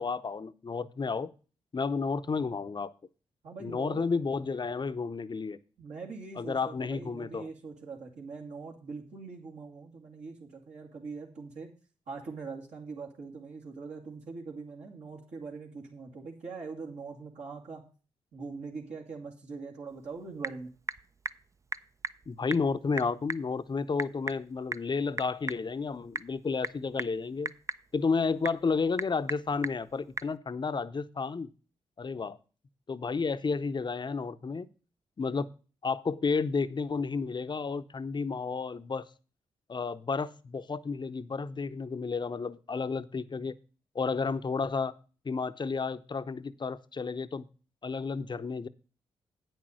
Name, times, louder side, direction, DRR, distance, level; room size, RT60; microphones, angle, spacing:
voice 1, 0.0-1.3 1.7-2.9 3.6-5.6 6.4-7.5 22.3-27.5 27.9-31.5 32.0-32.4 32.9-34.7 35.2-35.5 35.8-39.0 39.7-43.5 43.9-44.9 45.2-47.5 47.8-48.7, left 4 dB, 40° left, 0.7 m, -31 dB
voice 2, 3.4-4.1 5.8-11.7 12.1-17.8 18.3-20.7, right 4 dB, 65° right, 2.3 m, -42 dB
Typing / Telephone, 19.9-30.4, right 3 dB, 25° right, 0.5 m, -41 dB
8.7 x 6.2 x 6.3 m
supercardioid pair, 45°, 12 cm